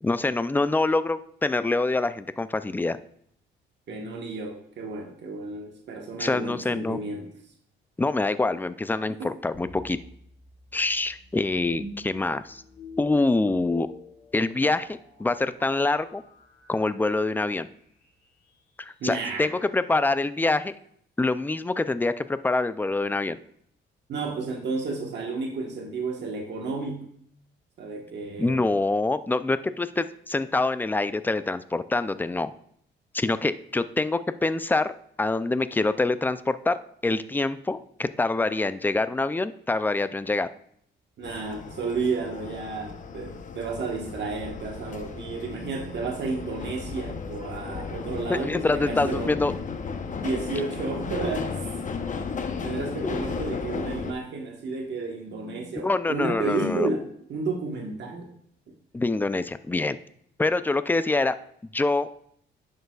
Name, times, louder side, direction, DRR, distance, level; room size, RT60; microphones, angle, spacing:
voice 1, 0.0-3.0 6.2-7.0 8.0-10.0 10.7-12.6 13.0-13.9 14.3-16.2 16.7-17.7 18.8-20.7 21.2-23.4 28.4-32.5 33.1-34.9 35.2-36.8 37.0-40.5 48.3-49.5 53.0-53.2 55.8-56.9 58.9-60.0 60.4-61.3 61.7-62.1, left 2 dB, 10° left, 13 dB, 0.3 m, -25 dB
voice 2, 3.9-7.3 9.2-9.3 19.0-19.5 24.1-27.1 27.8-28.6 41.2-49.3 50.2-51.5 52.6-58.3 58.7-58.8, right 3 dB, 60° right, 1 dB, 1.3 m, -32 dB
sound 1, 9.5-18.6, left 2 dB, 60° left, 2.6 m, -48 dB
sound 2, 41.2-54.1, left 5 dB, 40° left, 0.8 m, -34 dB
10.5 x 6.6 x 2.3 m, 0.66 s
cardioid pair, 90°, 20 cm